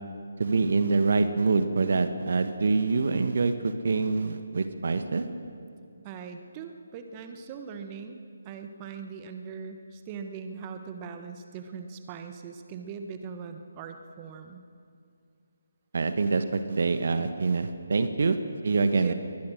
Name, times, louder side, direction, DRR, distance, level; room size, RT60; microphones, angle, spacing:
voice 1, 0.4-5.2 15.9-18.4 18.6-19.1, right 4 dB, 55° right, 9 dB, 1.3 m, -25 dB
voice 2, 6.0-14.6 18.8-19.1, right 6 dB, 25° right, 6 dB, 1.3 m, -41 dB
22.5 x 19.5 x 6.5 m, 2.4 s
figure-of-eight pair, 145°, 0 cm